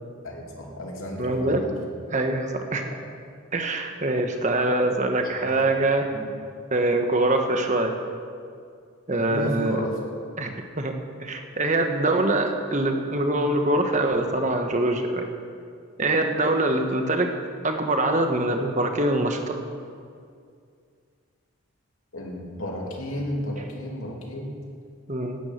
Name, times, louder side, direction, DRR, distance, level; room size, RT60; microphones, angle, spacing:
voice 1, 0.2-1.6 5.5-5.6 6.1-6.3 9.1-10.0 22.1-24.5, equal, 80° left, -1 dB, 2.9 m, -32 dB
voice 2, 1.2-1.8 2.1-2.9 3.5-6.1 6.7-7.9 9.1-9.8 10.4-10.9 11.2-15.2 16.0-17.3 17.6-19.6 25.1-25.4, right 2 dB, 35° right, 4 dB, 1.3 m, -24 dB
12.5 x 9.9 x 9.2 m, 2.3 s
head